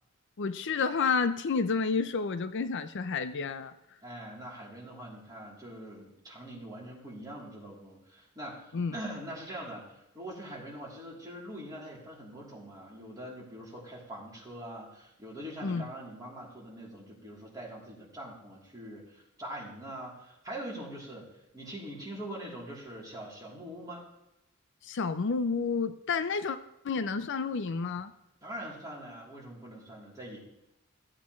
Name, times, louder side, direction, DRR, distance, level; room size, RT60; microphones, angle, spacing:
voice 1, 0.4-3.7 8.7-8.9 15.6-15.9 24.8-26.6 26.8-28.1, left 5 dB, 60° left, 11 dB, 0.5 m, -30 dB
voice 2, 4.0-24.0 28.4-30.4, right 1 dB, 20° right, -5 dB, 3.1 m, -43 dB
15.0 x 8.5 x 3.1 m, 0.90 s
head